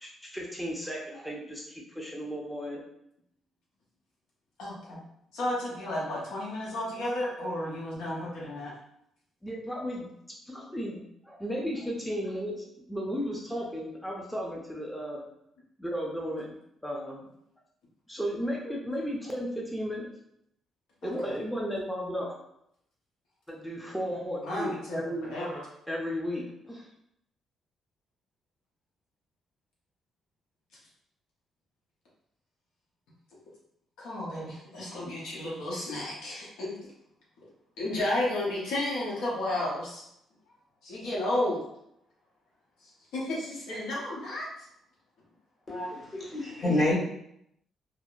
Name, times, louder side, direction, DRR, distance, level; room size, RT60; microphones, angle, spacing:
voice 1, 0.0-2.8 9.4-10.1 10.5-15.2 15.8-16.6 16.8-17.3 18.1-20.1 21.0-22.3 23.5-25.3 25.9-26.9, equal, 5° left, -2 dB, 0.5 m, -34 dB
voice 2, 4.6-5.0 5.3-8.7 21.0-21.3 24.4-25.6 34.0-36.7 37.8-40.0 40.8-41.6 43.1-44.5, left 1 dB, 90° left, -5 dB, 0.7 m, -32 dB
voice 3, 45.7-47.0, left 1 dB, 45° left, -6 dB, 1.2 m, -28 dB
2.7 x 2.0 x 2.3 m, 0.76 s
cardioid pair, 90°, 0 cm